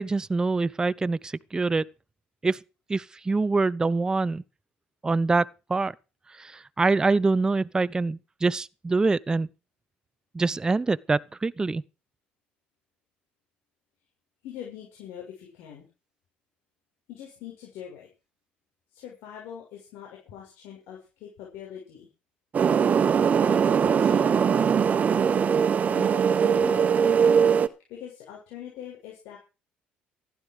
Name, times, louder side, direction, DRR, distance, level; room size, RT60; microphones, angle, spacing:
voice 1, 0.0-1.9 2.4-2.6 2.9-4.4 5.0-5.9 6.4-9.5 10.3-11.8, right 3 dB, 20° right, 0.7 m, -25 dB
voice 2, 14.4-15.9 17.1-18.1 18.9-22.1 23.5-24.8 25.9-26.9 27.9-29.4, left 9 dB, 80° left, 6.8 m, -42 dB
sound 1, 22.5-27.7, right 7 dB, 40° right, 1.3 m, -21 dB
15.5 x 12.0 x 4.9 m
cardioid pair, 95°, 4 cm